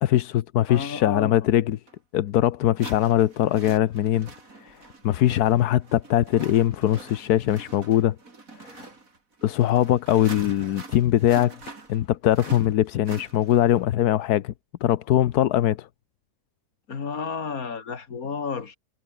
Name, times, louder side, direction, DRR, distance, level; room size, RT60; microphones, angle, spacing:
voice 1, 0.0-1.8 2.1-4.3 4.6-4.8 5.0-8.2 8.6-8.9 9.4-11.6 11.9-14.5 14.8-15.9, left 12 dB, 85° left, 1.3 m, -21 dB
voice 2, 0.7-1.3 16.9-18.8, left 5 dB, 65° left, 2.5 m, -31 dB
sound 1, 1.9-2.0 2.8-13.8, right 3 dB, 60° right, 3.9 m, -44 dB
omnidirectional pair, 1.6 m